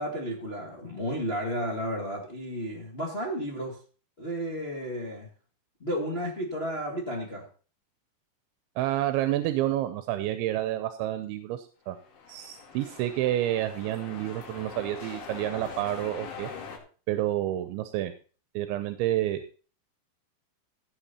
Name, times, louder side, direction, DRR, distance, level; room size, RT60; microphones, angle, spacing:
voice 1, 0.0-3.8 4.2-5.3 5.8-7.4, equal, 65° left, -1 dB, 0.6 m, -32 dB
voice 2, 8.8-12.0 12.3-16.5 17.1-18.1 18.5-19.6, right 13 dB, 85° right, 10 dB, 3.1 m, -29 dB
People Crowd Talking Chatting, 11.9-16.8, left 5 dB, 90° left, 4.9 m, -43 dB
16.0 x 7.8 x 4.3 m, 0.38 s
omnidirectional pair, 5.3 m